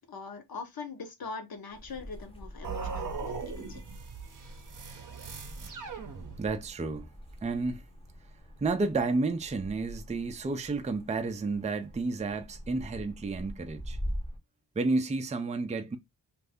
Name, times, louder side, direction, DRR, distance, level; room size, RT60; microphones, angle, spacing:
voice 1, 0.0-3.3 3.7-3.8, left 4 dB, 55° left, 0.9 m, -42 dB
sound 1, 1.7-14.4, equal, 15° left, 0.7 m, -44 dB
sound 2, 2.6-6.7, right 5 dB, 45° right, 0.7 m, -39 dB
voice 2, 6.2-7.1 7.4-7.8 8.6-14.0 14.8-16.0, right 3 dB, 15° right, 0.4 m, -31 dB
2.6 x 2.5 x 3.4 m
wide cardioid pair, 110°, 42 cm